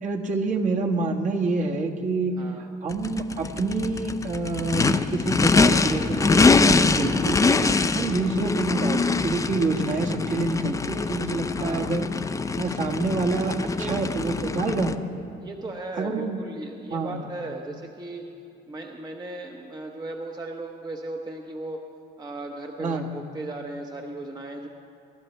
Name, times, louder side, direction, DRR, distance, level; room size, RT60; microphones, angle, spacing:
voice 1, 0.0-2.4 2.8-7.5 7.9-12.1 12.6-14.9 16.0-16.4 16.9-17.2 22.8-23.1, right 3 dB, 50° right, 1 dB, 1.6 m, -27 dB
voice 2, 2.4-2.7 8.0-8.3 11.5-12.0 13.8-14.1 14.5-14.9 15.4-18.3 18.7-21.8 22.2-24.7, right 2 dB, 25° right, 2 dB, 1.0 m, -37 dB
Race car auto racing / Idling / Accelerating revving vroom, 2.9-14.9, left 4 dB, 20° left, 0.6 m, -23 dB
22.5 x 11.5 x 4.4 m, 2.9 s
cardioid pair, 110°, 17 cm